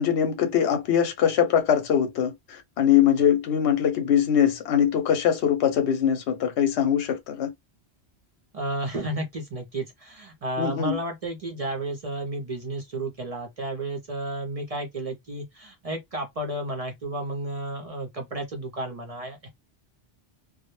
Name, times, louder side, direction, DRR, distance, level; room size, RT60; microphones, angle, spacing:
voice 1, 0.0-7.5 10.6-11.0, left 9 dB, 80° left, 0.9 m, -22 dB
voice 2, 8.5-19.5, right 1 dB, 50° right, 0.5 m, -32 dB
2.1 x 2.0 x 3.0 m
omnidirectional pair, 1.1 m